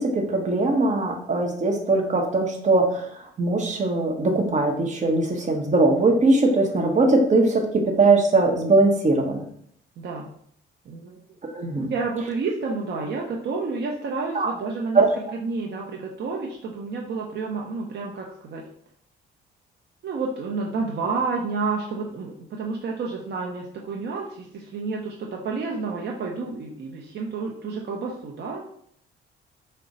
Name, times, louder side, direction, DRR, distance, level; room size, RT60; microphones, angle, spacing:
voice 1, 0.0-9.4 11.5-11.9 14.3-14.5 14.9-15.1, right 2 dB, 35° right, 2 dB, 0.9 m, -21 dB
voice 2, 10.0-10.3 10.8-11.2 11.8-18.7 20.0-28.7, right 4 dB, 60° right, -1 dB, 0.6 m, -30 dB
4.8 x 2.1 x 4.0 m, 0.66 s
cardioid pair, 90°, 20 cm